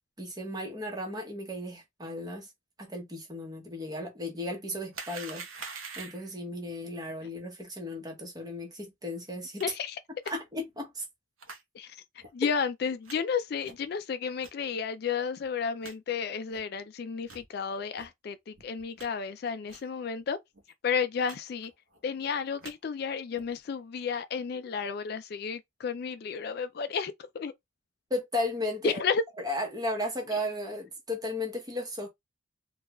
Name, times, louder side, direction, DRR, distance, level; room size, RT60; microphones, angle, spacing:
voice 1, 0.2-2.5 2.8-5.4 6.0-9.6 10.3-11.0 28.1-29.0 29.4-32.1, left 1 dB, 20° right, 0.9 m, -35 dB
sound 1, 4.9-6.4 9.6-9.7 10.2-10.3 11.4-11.6 12.2-12.3 13.1-13.2 13.6-13.9 14.4-14.5 15.1-15.2 15.4-15.5 15.8-16.0 16.5-16.6 17.2-17.5 18.0-18.1 18.5-19.1 19.7-19.9 20.2-20.3 20.5-20.7 21.2-21.4 21.6-22.0 22.4-22.7 23.3-23.6, right 5 dB, 85° right, 0.8 m, -44 dB
voice 2, 9.6-10.0 11.7-12.0 12.3-20.4 20.8-21.7 22.0-27.5 28.8-29.2, left 6 dB, 50° left, 0.3 m, -32 dB
3.5 x 2.3 x 2.9 m
head